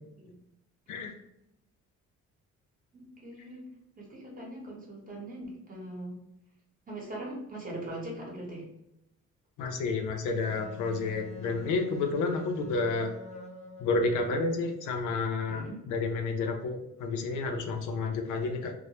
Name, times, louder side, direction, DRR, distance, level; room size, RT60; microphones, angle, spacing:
voice 1, 2.9-3.7 4.0-6.2 6.9-8.7 15.5-15.8, right 1 dB, 30° right, -2 dB, 1.0 m, -41 dB
voice 2, 9.6-13.1 13.8-18.7, left 3 dB, 85° left, 4 dB, 0.5 m, -30 dB
Wind instrument woodwind instrument, 10.5-14.6, left 2 dB, 25° left, 0.5 m, -46 dB
2.1 x 2.0 x 2.9 m, 0.86 s
cardioid pair, 90°, 30 cm